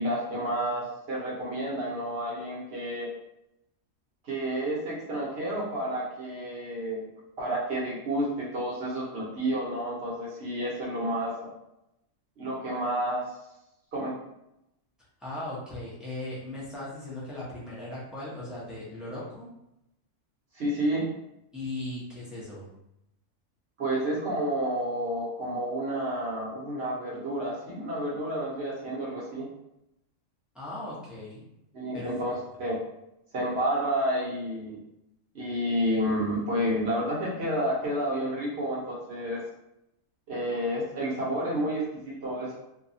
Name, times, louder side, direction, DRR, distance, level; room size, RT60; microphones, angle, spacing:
voice 1, 0.0-3.1 4.2-7.1 7.4-11.5 12.4-13.3 13.9-14.1 20.5-21.0 23.8-29.5 31.7-32.8 33.3-34.8 35.3-39.4 40.3-42.5, right 1 dB, 60° right, -5 dB, 1.0 m, -30 dB
voice 2, 15.2-19.5 21.5-22.7 30.5-31.4 31.9-32.1 32.5-32.6, left 1 dB, ahead, -8 dB, 0.6 m, -38 dB
2.6 x 2.2 x 2.6 m, 0.85 s
omnidirectional pair, 1.3 m